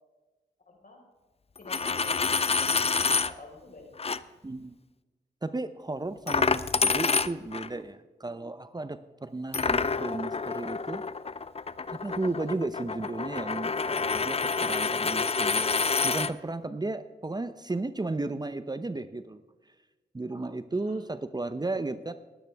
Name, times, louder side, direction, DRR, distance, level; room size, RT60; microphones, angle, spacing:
voice 1, 0.7-1.0 1.6-3.9 20.7-21.0, left 2 dB, 55° left, 0 dB, 4.7 m, -48 dB
Coin (dropping), 1.6-3.3 4.0-4.2 6.3-7.7 9.5-16.3, left 4 dB, 35° left, 0.6 m, -28 dB
voice 2, 4.4-4.8 5.4-11.0 11.9-19.4 20.1-22.1, right 2 dB, 25° right, 11 dB, 0.7 m, -34 dB
20.0 x 9.3 x 3.5 m, 1.2 s
cardioid pair, 50°, 17 cm